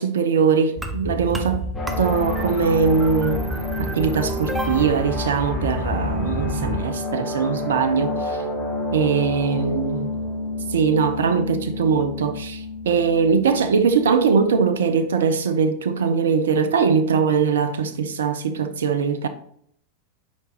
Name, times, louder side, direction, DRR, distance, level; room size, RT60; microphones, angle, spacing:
voice 1, 0.0-1.6 2.0-3.5 3.8-8.4 8.9-10.1 10.7-19.3, right 6 dB, 75° right, 0.6 m, -21 dB
sound 1, 0.8-6.8, equal, 10° right, 0.9 m, -29 dB
sound 2, 1.7-14.8, left 2 dB, 5° left, 2.2 m, -30 dB
7.1 x 5.1 x 2.9 m
hypercardioid pair, 90°, 0 cm